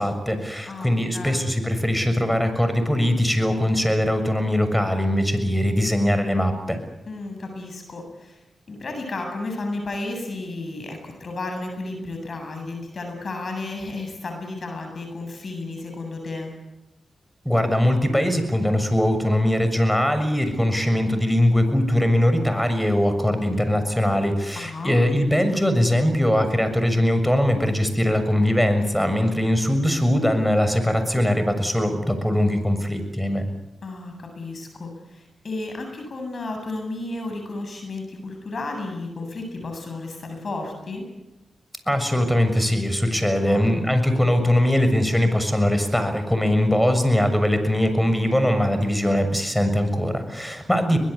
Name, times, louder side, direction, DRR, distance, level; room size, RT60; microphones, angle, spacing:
voice 1, 0.0-6.8 17.4-33.4 41.9-51.0, left 1 dB, 5° left, 9 dB, 6.8 m, -21 dB
voice 2, 0.7-1.5 7.1-8.4 8.7-16.5 24.5-25.0 33.8-41.0 43.5-43.7 50.9-51.0, left 2 dB, 60° left, 4 dB, 7.9 m, -33 dB
23.5 x 20.5 x 8.4 m, 0.95 s
supercardioid pair, 40°, 0 cm